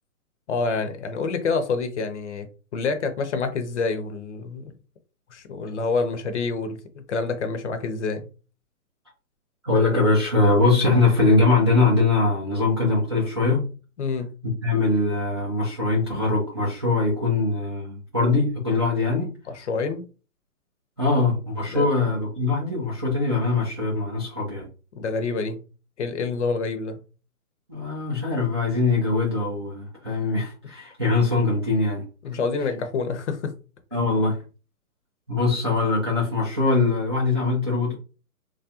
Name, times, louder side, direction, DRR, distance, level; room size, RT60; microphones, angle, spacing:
voice 1, 0.5-4.7 5.3-8.3 14.0-14.3 19.5-20.0 21.7-21.9 24.9-25.6 26.0-27.0 32.2-33.6, left 4 dB, 50° left, 0.7 m, -27 dB
voice 2, 9.6-13.7 14.4-19.3 21.0-24.7 27.7-32.0 33.9-34.4 35.3-37.9, left 3 dB, 20° right, 0.4 m, -22 dB
3.2 x 2.4 x 2.7 m
hypercardioid pair, 150°, 45 cm